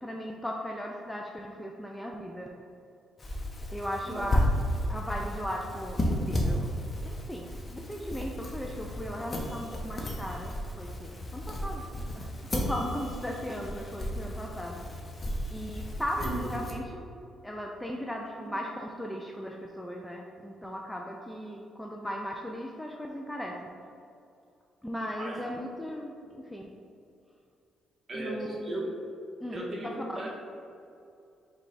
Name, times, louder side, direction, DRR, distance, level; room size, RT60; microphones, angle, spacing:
voice 1, 0.0-2.5 3.7-4.5 4.9-6.7 7.0-11.8 12.1-12.3 12.5-14.8 15.5-17.0 17.4-23.7 24.8-26.7 28.1-28.8 29.4-30.2, equal, 5° left, 0 dB, 0.3 m, -37 dB
sound 1, 3.2-16.7, equal, 30° left, 0.7 m, -33 dB
voice 2, 28.1-28.9 29.5-30.3, right 2 dB, 30° right, -4 dB, 1.1 m, -36 dB
4.8 x 2.2 x 4.0 m, 2.5 s
cardioid pair, 90°, 0 cm